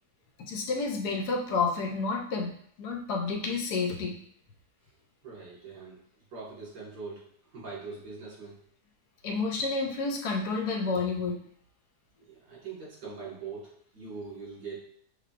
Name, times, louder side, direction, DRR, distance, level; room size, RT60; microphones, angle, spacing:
voice 1, 0.4-2.5 2.8-4.2 9.2-11.4, left 4 dB, 75° left, 2 dB, 1.2 m, -30 dB
voice 2, 5.2-6.0 6.3-8.6 12.3-14.8, right 4 dB, 80° right, -6 dB, 2.3 m, -42 dB
5.9 x 3.4 x 2.5 m, 0.65 s
omnidirectional pair, 1.7 m